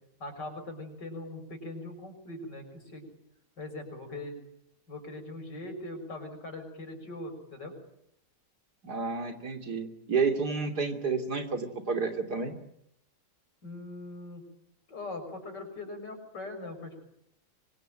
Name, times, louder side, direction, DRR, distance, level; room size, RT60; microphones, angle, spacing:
voice 1, 0.2-3.1 3.6-4.4 4.9-7.7 13.6-14.5 14.9-17.0, left 2 dB, 75° left, 5 dB, 7.1 m, -41 dB
voice 2, 8.8-12.5, right 4 dB, 65° right, 4 dB, 3.6 m, -30 dB
25.5 x 24.5 x 9.1 m, 0.76 s
omnidirectional pair, 1.9 m